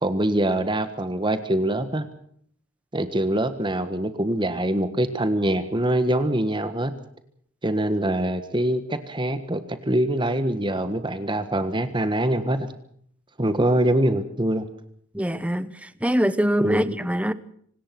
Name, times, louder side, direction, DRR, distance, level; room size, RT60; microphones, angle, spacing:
voice 1, 0.0-2.0 2.9-6.9 7.6-12.7 13.4-14.6 16.6-17.0, right 1 dB, 20° right, 1.5 m, -24 dB
voice 2, 15.1-17.3, equal, 5° right, 1.1 m, -24 dB
25.5 x 19.0 x 6.0 m
head